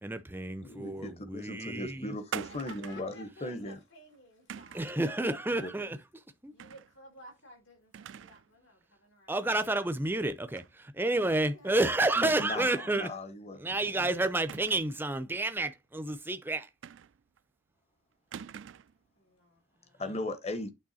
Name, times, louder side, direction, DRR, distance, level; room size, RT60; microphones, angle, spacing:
voice 1, 0.0-2.1 4.7-6.5 9.3-13.1 13.6-16.7, right 2 dB, 10° right, 0.6 m, -30 dB
voice 2, 0.6-3.8 5.5-5.7 12.1-14.1 20.0-20.7, left 1 dB, 35° left, 1.0 m, -38 dB
sound 1, 2.3-3.1 4.5-5.0 6.6-6.9 7.3-7.4 7.9-8.5 8.8-8.9 10.5-10.7 11.1-11.2 12.2-12.8 14.4-15.0 16.8-17.4 18.3-19.0, right 8 dB, 70° right, 0.4 m, -44 dB
voice 3, 2.5-5.4 6.5-9.9 11.0-13.2 19.1-20.1, left 1 dB, 85° left, 4.5 m, -55 dB
8.7 x 3.4 x 4.2 m
head